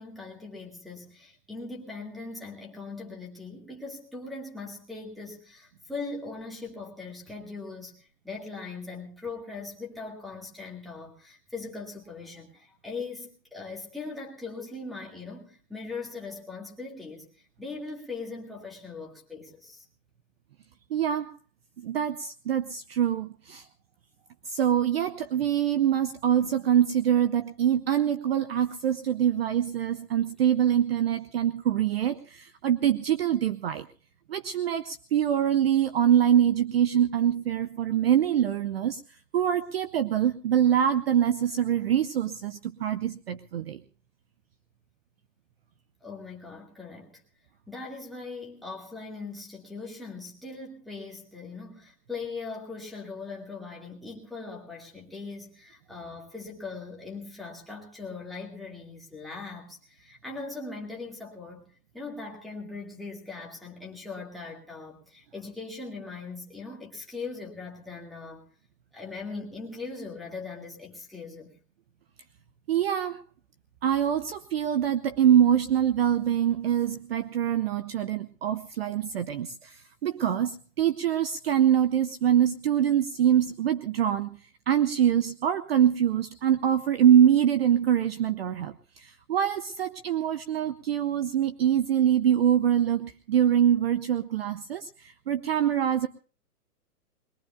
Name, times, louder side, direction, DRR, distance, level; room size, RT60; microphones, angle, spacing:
voice 1, 0.0-19.9 46.0-47.2 47.7-61.7 61.9-68.5 68.9-71.6, left 3 dB, ahead, 2.1 m, -40 dB
voice 2, 20.9-21.3 21.8-23.7 24.5-33.9 34.3-39.0 39.3-43.8 72.7-73.2 73.8-84.4 84.7-96.1, right 10 dB, 40° right, 0.7 m, -24 dB
22.0 x 22.0 x 2.3 m
hypercardioid pair, 160°, 47 cm